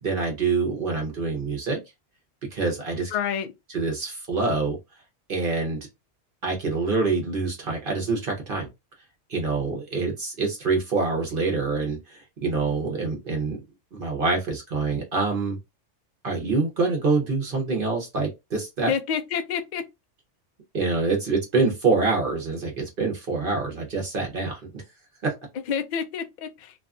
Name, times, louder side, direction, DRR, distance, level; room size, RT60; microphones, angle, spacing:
voice 1, 0.0-1.8 2.5-3.1 3.7-4.8 5.3-5.8 6.4-8.7 9.3-13.6 13.9-15.6 16.2-18.9 20.7-24.8 25.2-25.3, right 4 dB, 50° right, 0.9 m, -26 dB
voice 2, 3.1-3.5 18.9-19.8 25.7-26.7, left 7 dB, 60° left, 0.4 m, -28 dB
2.7 x 2.3 x 2.3 m
omnidirectional pair, 1.3 m